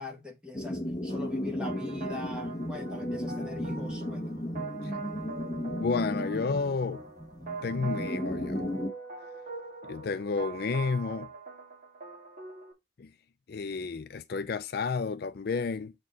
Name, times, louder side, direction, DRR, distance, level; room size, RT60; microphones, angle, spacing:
voice 1, 0.0-4.2, left 3 dB, 5° right, 1.6 m, -42 dB
sound 1, 0.5-8.9, left 1 dB, 20° left, 1.1 m, -35 dB
sound 2, 1.1-12.7, right 4 dB, 40° right, 2.1 m, -42 dB
voice 2, 5.7-7.0 7.6-8.7 9.8-11.3 13.0-13.1 13.5-15.9, left 4 dB, 50° left, 0.4 m, -31 dB
7.4 x 4.4 x 4.0 m
head